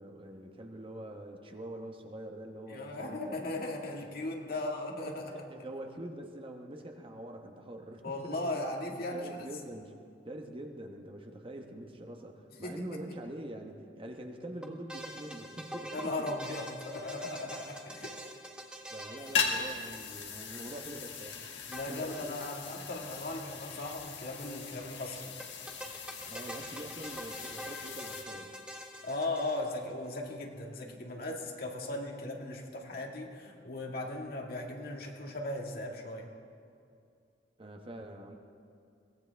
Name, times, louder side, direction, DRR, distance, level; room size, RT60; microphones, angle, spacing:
voice 1, 0.0-3.3 4.1-4.6 5.0-8.6 9.1-9.9 10.3-16.3 18.9-21.5 21.8-22.3 26.2-28.6 37.6-38.4, right 1 dB, 30° right, 3 dB, 1.1 m, -44 dB
voice 2, 2.7-5.4 8.0-9.4 12.6-13.0 15.9-18.2 21.7-25.3 29.0-36.3, left 2 dB, 55° left, 1 dB, 1.9 m, -37 dB
sound 1, 14.6-20.4 21.7-22.6 22.8-22.9 23.1-23.2 25.4-29.9, equal, 5° right, 1.2 m, -45 dB
sound 2, 19.2-28.2, left 5 dB, 75° left, 1.7 m, -39 dB
22.5 x 18.0 x 3.5 m, 2.4 s
head